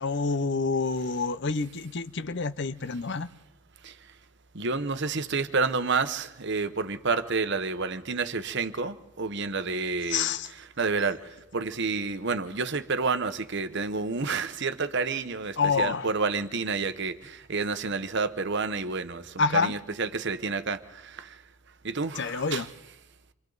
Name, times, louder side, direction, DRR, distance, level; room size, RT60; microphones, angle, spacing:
voice 1, 0.0-3.3 10.1-10.5 15.6-16.1 19.4-19.7 22.2-22.7, left 4 dB, 50° left, 0.7 m, -27 dB
voice 2, 4.5-10.3 10.8-11.2 11.5-19.2 19.6-21.3 21.8-22.6, right 4 dB, 50° right, 1.0 m, -29 dB
28.5 x 26.5 x 4.0 m
head